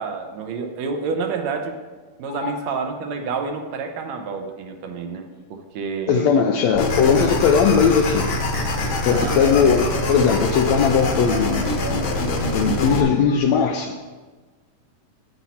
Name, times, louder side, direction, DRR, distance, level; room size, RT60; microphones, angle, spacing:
voice 1, 0.0-1.7 2.2-6.4 9.1-9.5, right 5 dB, 70° right, 5 dB, 1.9 m, -29 dB
voice 2, 6.1-8.3 9.0-11.7 12.5-13.9, left 6 dB, 80° left, 4 dB, 1.6 m, -19 dB
sound 1, 6.7-13.0, left 2 dB, 55° left, 1.5 m, -24 dB
10.0 x 9.6 x 4.2 m, 1.3 s
omnidirectional pair, 3.6 m